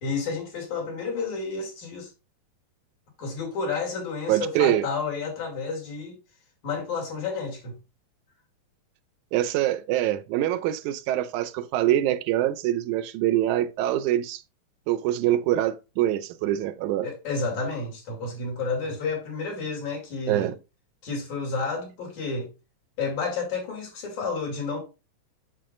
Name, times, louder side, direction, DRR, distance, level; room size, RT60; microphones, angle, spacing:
voice 1, 0.0-2.1 3.2-6.2 6.6-7.8 17.0-20.5 21.0-22.5 23.0-24.8, left 4 dB, 65° left, 3.9 m, -31 dB
voice 2, 4.3-4.9 9.3-14.4 14.9-17.1 20.3-20.6, right 13 dB, 80° right, 1.9 m, -24 dB
7.6 x 7.0 x 2.5 m
omnidirectional pair, 3.7 m